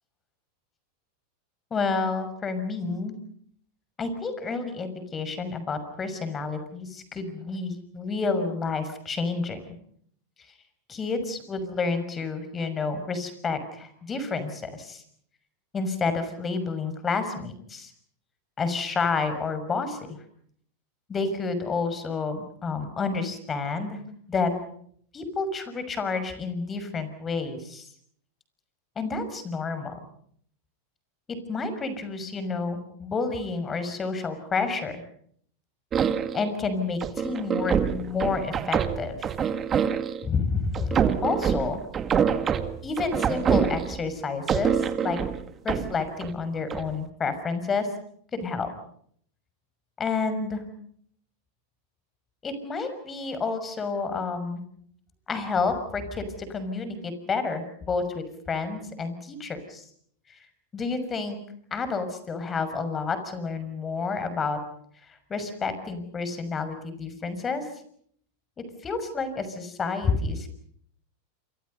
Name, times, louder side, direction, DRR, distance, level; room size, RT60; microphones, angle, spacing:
voice 1, 1.7-3.1 4.0-9.6 10.9-15.0 15.7-17.9 18.6-20.2 21.1-24.0 24.3-24.5 25.1-27.9 29.0-30.0 31.3-35.0 36.3-39.3 40.2-41.8 42.8-45.2 45.6-47.9 48.3-48.7 50.0-50.6 52.4-54.6 55.3-59.8 60.3-60.4 60.7-61.4 61.7-64.6 65.0-67.6 68.6-70.5, left 4 dB, 25° left, 11 dB, 6.1 m, -30 dB
sound 1, 35.9-36.5 37.0-40.3 40.7-44.1 44.5-46.3 46.7-46.9, right 7 dB, 30° right, 2.0 m, -26 dB
28.0 x 26.0 x 5.5 m, 0.63 s
hypercardioid pair, 110°, 0 cm